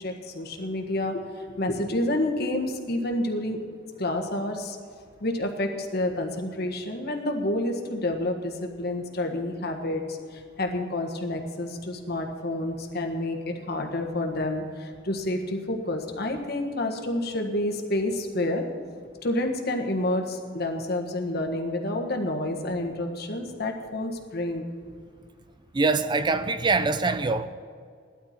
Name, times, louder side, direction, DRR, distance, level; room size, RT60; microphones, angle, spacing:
voice 1, 0.0-3.6 4.0-4.8 5.2-18.6 19.2-24.6, left 1 dB, 60° left, 1.6 m, -29 dB
voice 2, 25.7-27.5, right 3 dB, 25° right, 0.4 m, -24 dB
17.0 x 12.0 x 4.4 m
head